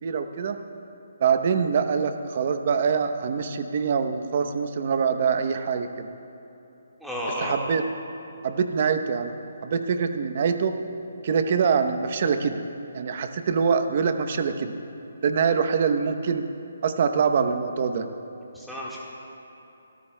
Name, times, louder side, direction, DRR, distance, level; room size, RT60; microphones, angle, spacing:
voice 1, 0.0-0.6 1.2-6.1 7.4-7.8 8.4-9.3 9.6-10.7 11.2-12.6 12.9-14.7 15.2-16.4 16.8-18.1, right 6 dB, 45° right, 7 dB, 0.8 m, -24 dB
voice 2, 7.0-7.6 18.5-19.0, equal, ahead, -8 dB, 1.6 m, -31 dB
23.5 x 13.5 x 2.2 m, 3.0 s
hypercardioid pair, 160°, 0 cm